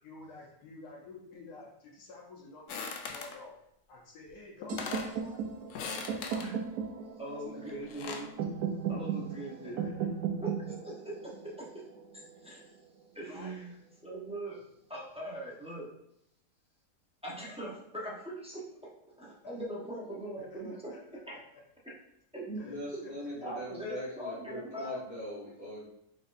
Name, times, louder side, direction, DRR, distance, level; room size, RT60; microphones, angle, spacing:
voice 1, 0.0-3.5 3.9-5.4 6.1-6.4 7.3-7.8 9.2-10.1 13.3-13.5 20.4-21.2 22.6-22.8 23.0-23.3 25.4-25.5, left 3 dB, 85° left, -3 dB, 1.4 m, -50 dB
sound 1, 2.7-3.4 4.3-4.4 4.6-5.2 5.7-6.5 7.7-8.3, left 5 dB, 65° left, 0.8 m, -39 dB
sound 2, 4.7-12.6, right 7 dB, 75° right, 1.1 m, -37 dB
voice 2, 7.2-8.3 8.9-9.8 10.4-11.8 12.1-12.7 13.1-13.7 14.0-14.6 14.9-15.9 17.2-18.6 19.2-20.7 21.3-21.4 22.3-23.1 23.4-25.0, right 1 dB, 5° right, -5 dB, 0.5 m, -41 dB
voice 3, 22.6-25.8, equal, 30° left, -7 dB, 1.1 m, -41 dB
4.5 x 4.0 x 2.5 m, 0.77 s
omnidirectional pair, 1.7 m